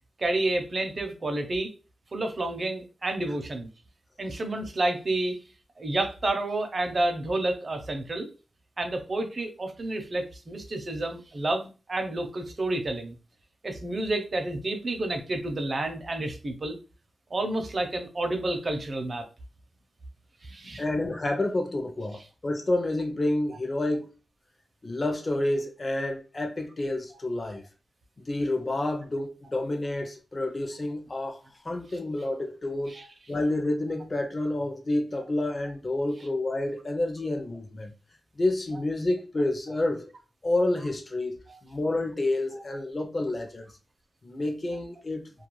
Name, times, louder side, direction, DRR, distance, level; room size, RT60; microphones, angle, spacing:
voice 1, 0.2-1.7 2.1-3.7 4.2-5.4 5.8-8.3 8.8-13.2 13.6-16.8 17.3-19.2 20.4-20.8 32.9-33.1 41.5-41.6 42.5-42.6, right 2 dB, 45° right, 0.6 m, -30 dB
voice 2, 20.8-24.1 24.8-27.6 28.3-31.4 31.6-33.0 33.3-37.9 38.4-40.1 40.4-41.4 41.6-43.7 44.2-45.2, left 2 dB, 35° left, 0.5 m, -29 dB
2.3 x 2.2 x 3.0 m
wide cardioid pair, 95°, 0 cm